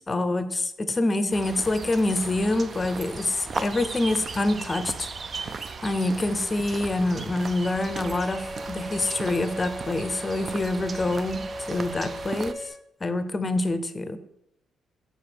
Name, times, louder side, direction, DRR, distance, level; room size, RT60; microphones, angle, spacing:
voice 1, 0.1-5.1 5.3-12.7 13.0-14.2, left 2 dB, 25° left, 11 dB, 0.6 m, -26 dB
sound 1, 1.3-12.5, right 4 dB, 40° right, 0.4 m, -37 dB
Bowed string instrument, 7.6-12.7, equal, 80° right, 2.4 m, -38 dB
4.9 x 4.6 x 5.9 m, 0.81 s
cardioid pair, 90°, 0 cm